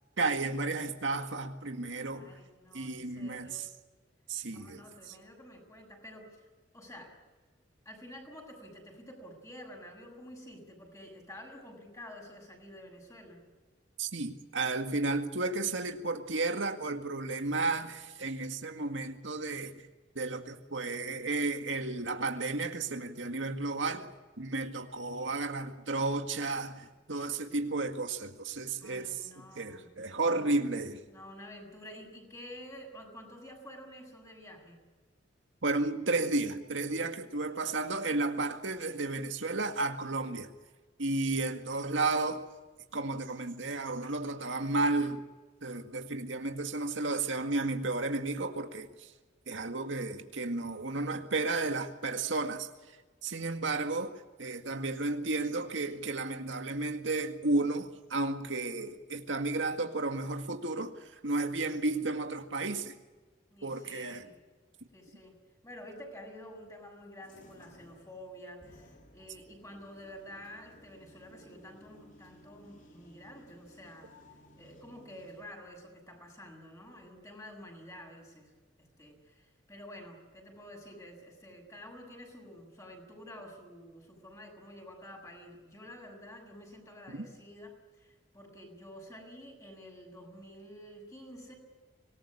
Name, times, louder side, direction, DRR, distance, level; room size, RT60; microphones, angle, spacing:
voice 1, 0.2-2.4 2.7-3.7 4.3-4.8 5.1-5.2 14.0-19.9 20.2-24.1 24.4-29.3 29.6-31.0 35.6-40.5 41.0-42.4 42.9-45.2 45.6-49.1 49.5-53.0 53.2-54.1 54.4-62.9 63.6-64.3 87.1-87.2, right 3 dB, 80° right, 1.9 m, -33 dB
voice 2, 2.1-3.6 4.5-6.5 6.7-7.1 7.8-13.4 28.8-29.9 30.1-30.6 31.1-34.8 63.5-64.3 64.9-65.4 65.6-74.1 74.6-78.5 78.8-91.5, left 1 dB, 20° left, 6.7 m, -49 dB
sound 1, 67.2-75.4, equal, 45° left, 3.4 m, -58 dB
25.5 x 19.0 x 8.6 m
head